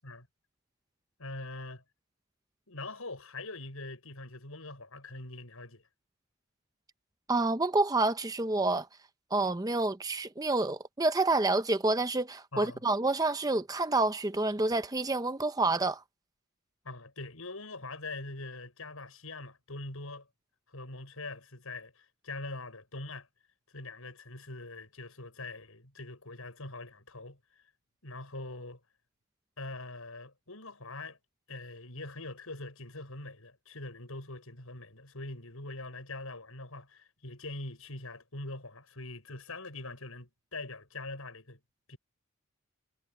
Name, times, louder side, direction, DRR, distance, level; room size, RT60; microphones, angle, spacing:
voice 1, 1.2-1.8 2.7-5.8 12.5-12.8 16.8-20.3 20.7-23.3 23.7-27.4 28.0-28.8 29.6-31.2 31.5-41.6 41.9-42.0, left 2 dB, 75° left, 6.6 m, -43 dB
voice 2, 7.3-8.9 9.3-16.0, right 2 dB, 15° right, 0.7 m, -28 dB
head